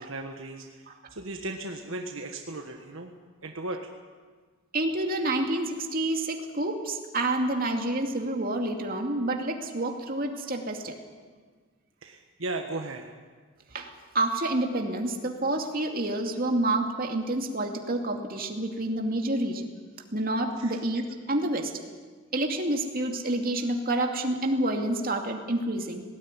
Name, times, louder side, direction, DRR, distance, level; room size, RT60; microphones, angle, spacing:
voice 1, 0.0-3.1 3.4-3.8 12.0-13.1 20.6-20.8, right 2 dB, 65° right, 3 dB, 1.5 m, -36 dB
voice 2, 4.7-10.9 13.7-19.7 20.1-21.7 22.3-26.0, right 1 dB, 45° right, 3 dB, 2.5 m, -28 dB
19.0 x 18.5 x 9.8 m, 1.5 s
head